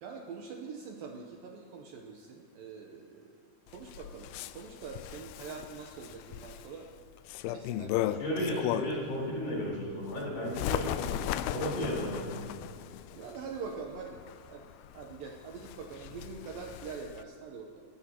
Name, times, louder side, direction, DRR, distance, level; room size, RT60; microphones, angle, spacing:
voice 1, 0.0-3.3 3.7-6.9 7.5-8.6 13.1-14.2 14.5-14.6 14.9-17.8, right 5 dB, 75° right, 2 dB, 2.2 m, -44 dB
Bird, 3.7-9.1 9.6-17.2, left 12 dB, 85° left, 2.3 m, -37 dB
voice 2, 8.2-11.2 11.5-12.4, equal, 55° left, -5 dB, 5.6 m, -34 dB
28.0 x 13.5 x 2.9 m, 2.1 s
omnidirectional pair, 4.8 m